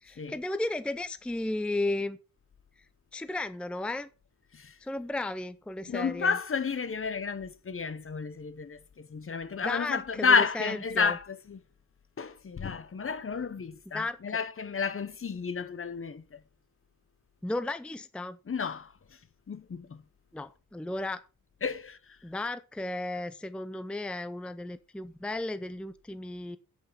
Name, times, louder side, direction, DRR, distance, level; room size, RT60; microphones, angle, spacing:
voice 1, 0.0-2.2 3.1-4.1 4.8-6.4 9.6-11.2 13.9-14.2 17.4-18.4 20.3-21.2 22.2-26.6, left 2 dB, 5° left, 0.6 m, -34 dB
voice 2, 5.9-11.6 12.2-16.4 18.5-18.9 19.5-20.0 21.6-22.2, left 5 dB, 40° left, 0.9 m, -31 dB
8.4 x 8.2 x 5.8 m
wide cardioid pair, 120°, 33 cm